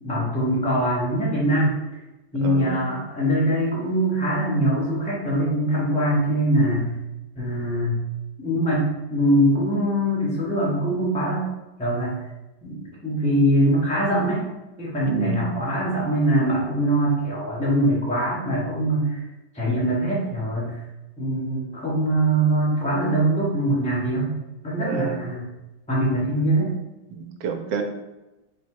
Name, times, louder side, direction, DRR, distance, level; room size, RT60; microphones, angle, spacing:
voice 1, 0.0-1.7 2.3-6.9 7.4-8.0 8.4-11.5 11.8-12.2 12.6-14.5 14.8-19.2 19.5-20.8 21.2-24.3 24.6-25.5 25.9-26.8, right 1 dB, 5° left, -8 dB, 0.7 m, -22 dB
voice 2, 2.4-3.0 15.0-15.6 24.8-25.2 27.2-27.8, right 6 dB, 75° right, 4 dB, 1.2 m, -29 dB
4.1 x 2.2 x 4.4 m, 1.0 s
omnidirectional pair, 1.9 m